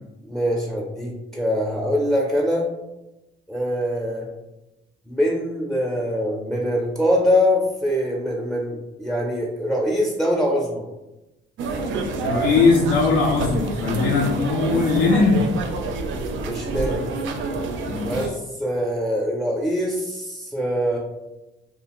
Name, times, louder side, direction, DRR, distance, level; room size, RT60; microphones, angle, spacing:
voice 1, 0.2-2.7 3.5-4.3 5.1-10.9 16.4-17.1 18.0-21.0, equal, ahead, -2 dB, 0.5 m, -23 dB
sound 1, 11.6-18.3, right 3 dB, 75° right, 0.4 m, -27 dB
voice 2, 12.2-15.5 17.9-18.3, left 4 dB, 80° left, -2 dB, 0.4 m, -20 dB
2.5 x 2.4 x 2.9 m, 0.99 s
cardioid pair, 90°, 20 cm